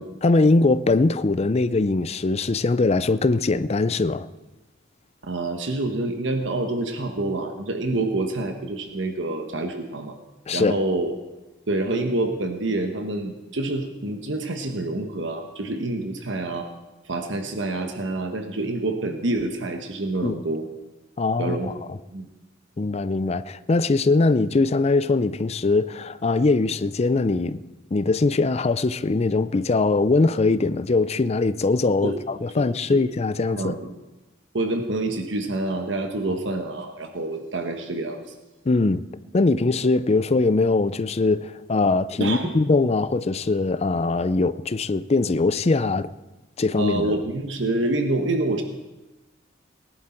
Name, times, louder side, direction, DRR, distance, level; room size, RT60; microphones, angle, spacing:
voice 1, 0.2-4.3 10.5-10.8 20.2-20.4 21.2-22.0 22.8-27.6 27.9-33.8 38.7-39.0 39.3-46.1 46.6-47.1, left 3 dB, 35° left, 0.5 m, -21 dB
voice 2, 5.3-10.1 10.5-11.1 11.7-16.7 17.1-20.6 21.4-21.7 22.1-22.3 32.0-32.2 32.6-33.0 33.5-33.9 34.5-38.3 42.2-42.5 46.8-48.6, right 2 dB, 65° right, 1.3 m, -27 dB
19.5 x 11.0 x 4.5 m
head